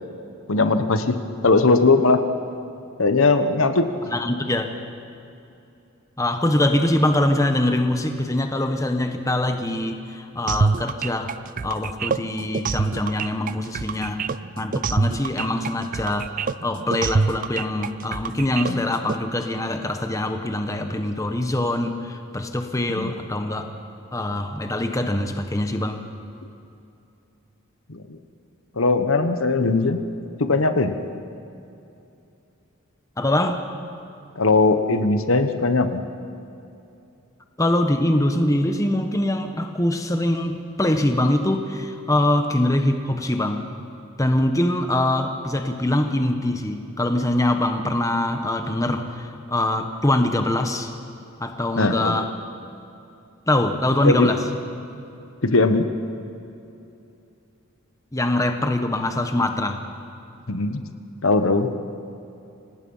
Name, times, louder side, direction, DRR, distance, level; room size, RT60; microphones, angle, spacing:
voice 1, 0.5-1.2 1.4-2.2 3.0-3.9 18.6-18.8 22.9-23.1 27.9-28.2 28.8-30.0 30.4-31.0 34.4-36.0 51.8-52.2 54.0-54.3 55.4-55.9 60.5-60.8 61.2-61.7, left 3 dB, 70° left, 9 dB, 1.2 m, -19 dB
voice 2, 4.1-4.7 6.2-11.4 11.6-16.3 16.6-23.7 24.1-26.1 33.2-33.7 37.6-43.7 44.2-50.9 51.4-52.3 53.5-54.4 58.1-59.8, left 1 dB, 15° left, 6 dB, 1.1 m, -23 dB
sound 1, 10.5-19.2, right 4 dB, 40° right, 0.4 m, -25 dB
26.5 x 18.5 x 5.6 m, 2.7 s
head